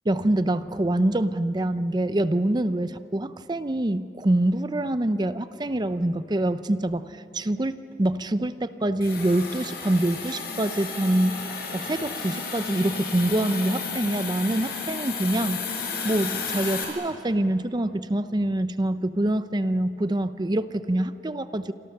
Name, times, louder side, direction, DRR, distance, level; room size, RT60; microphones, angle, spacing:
voice 1, 0.1-15.7 16.0-21.7, right 1 dB, 25° right, 12 dB, 0.6 m, -25 dB
Hiss, 9.0-16.8, left 5 dB, 60° left, 5.4 m, -33 dB
28.5 x 26.0 x 6.6 m, 2.7 s
head